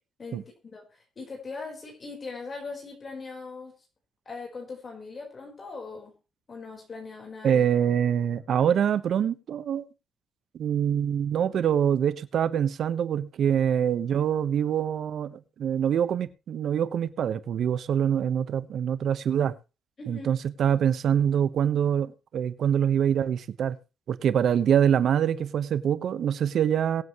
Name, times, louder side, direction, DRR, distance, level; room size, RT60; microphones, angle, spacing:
voice 1, 0.2-3.7 4.3-6.1 6.5-7.6 20.0-20.3, left 4 dB, 40° left, 4.4 m, -40 dB
voice 2, 7.4-9.9 10.5-19.5 20.1-23.8 24.1-27.0, right 9 dB, 65° right, 1.2 m, -25 dB
22.5 x 7.9 x 3.1 m
cardioid pair, 90°, 0 cm